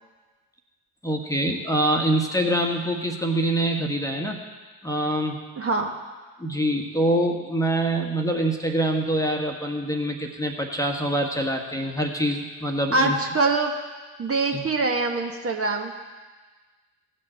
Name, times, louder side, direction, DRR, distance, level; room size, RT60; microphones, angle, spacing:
voice 1, 1.0-4.4 4.8-5.4 6.4-13.2 14.5-14.7, right 1 dB, 5° left, 2 dB, 1.4 m, -25 dB
voice 2, 5.6-5.9 12.9-13.7 14.2-15.9, right 3 dB, 30° right, 2 dB, 1.3 m, -24 dB
16.5 x 6.6 x 4.4 m, 1.3 s
figure-of-eight pair, 50°, 47 cm